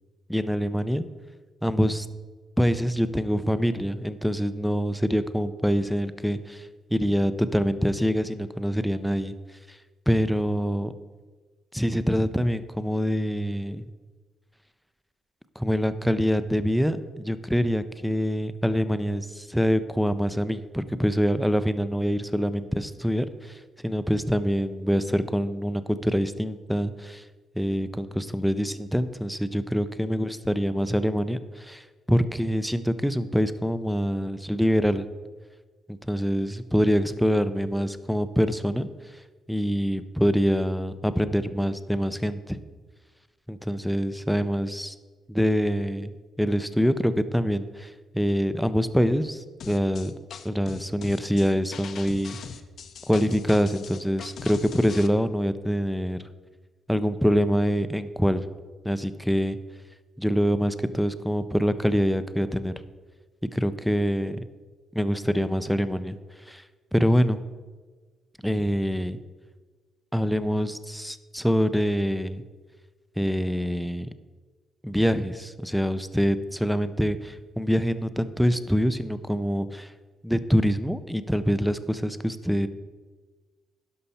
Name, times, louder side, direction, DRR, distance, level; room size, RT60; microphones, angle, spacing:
voice 1, 0.3-1.1 1.6-2.1 2.6-9.4 9.7-9.8 10.1-10.9 11.7-13.9 15.6-27.2 27.6-35.1 35.9-38.9 39.5-42.6 43.5-44.9 45.3-46.1 46.4-50.1 50.4-52.4 53.1-56.3 56.9-58.4 58.8-59.6 60.2-62.7 63.5-64.4 64.9-66.2 66.5-66.6 66.9-67.4 68.4-69.2 70.1-72.4 73.2-74.1 74.8-79.9 80.2-82.7, equal, ahead, 12 dB, 0.5 m, -25 dB
sound 1, 49.6-55.1, left 7 dB, 60° left, 0.6 m, -41 dB
11.0 x 5.7 x 4.2 m, 1.4 s
cardioid pair, 90°, 0 cm